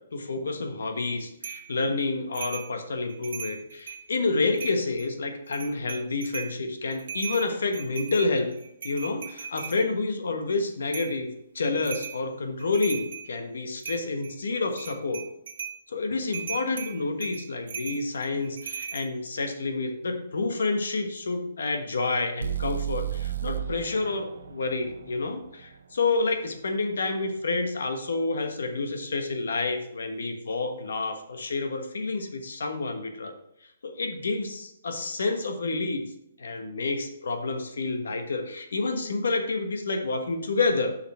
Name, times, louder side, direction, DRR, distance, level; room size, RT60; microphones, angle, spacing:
voice 1, 0.1-8.5 8.8-11.3 11.5-15.2 15.9-33.3 33.8-36.0 36.4-41.0, left 3 dB, 85° left, 5 dB, 1.3 m, -29 dB
sound 1, 1.4-1.7 2.3-2.7 3.1-4.0 4.5-5.1 5.5-6.5 6.9-9.8 10.9-11.2 11.8-12.2 12.6-13.3 13.8-14.3 14.7-15.8 16.3-19.1, right 7 dB, 55° right, 1.2 m, -38 dB
sound 2, 22.4-26.4, right 11 dB, 80° right, 0.7 m, -34 dB
7.0 x 5.5 x 4.4 m, 0.78 s
hypercardioid pair, 170°, 0 cm